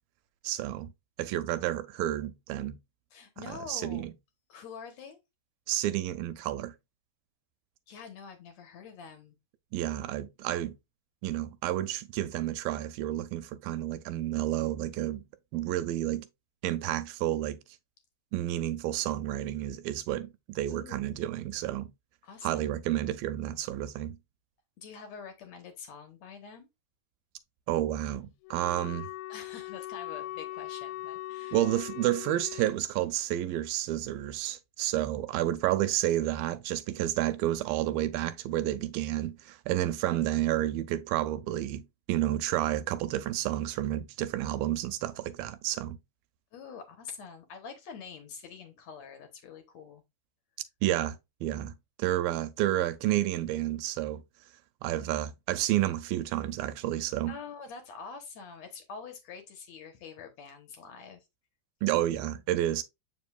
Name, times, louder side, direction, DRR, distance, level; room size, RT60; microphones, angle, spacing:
voice 1, 0.4-0.9 1.2-2.8 3.5-4.1 5.7-6.7 9.7-10.8 11.2-15.2 15.5-16.3 16.6-17.6 18.3-21.9 22.4-24.2 27.7-29.1 31.5-46.0 50.8-51.7 52.0-54.2 54.8-57.4 61.8-62.8, right 13 dB, 80° right, 2.2 m, -30 dB
voice 2, 3.1-4.1 4.5-5.2 7.9-9.4 20.7-21.1 22.2-22.7 24.8-26.7 29.3-31.6 46.5-50.0 57.3-61.3, left 6 dB, 65° left, 1.9 m, -46 dB
Wind instrument woodwind instrument, 28.4-32.8, left 17 dB, 85° left, 2.3 m, -40 dB
7.8 x 5.3 x 2.4 m
omnidirectional pair, 4.3 m